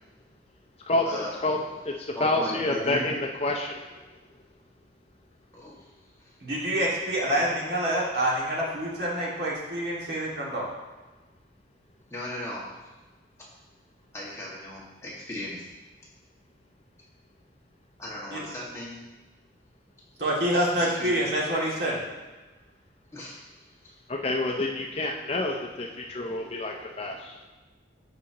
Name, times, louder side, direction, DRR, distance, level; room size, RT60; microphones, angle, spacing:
voice 1, 1.1-1.4 2.2-3.0 5.5-5.9 6.2-6.3 7.2-7.4 12.1-12.8 14.1-15.7 18.0-19.1 20.7-21.3 23.1-23.5 23.8-24.0, left 1 dB, 15° left, -6 dB, 1.7 m, -37 dB
voice 2, 1.8-3.8 24.1-27.4, left 2 dB, 30° left, 1 dB, 0.5 m, -28 dB
voice 3, 6.4-10.7 18.3-18.4 20.2-22.0, right 1 dB, 55° right, -5 dB, 2.1 m, -27 dB
13.5 x 4.9 x 2.9 m, 1.2 s
head